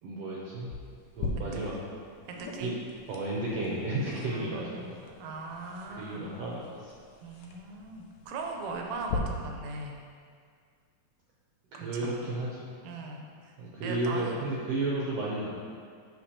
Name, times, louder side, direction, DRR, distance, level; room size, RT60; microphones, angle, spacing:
voice 1, 0.0-0.7 1.1-1.8 2.6-2.8 3.1-5.1 5.9-7.0 11.8-12.7 13.6-15.5, right 2 dB, 70° right, -5 dB, 1.8 m, -33 dB
sound 1, 0.7-9.2, left 4 dB, 80° left, 1.8 m, -42 dB
voice 2, 2.3-2.8 4.3-4.9 5.2-6.3 7.2-10.0 11.7-12.3 12.8-13.5 13.8-14.4, right 3 dB, 85° right, 1 dB, 2.1 m, -39 dB
7.7 x 6.7 x 2.9 m, 2.1 s
omnidirectional pair, 3.3 m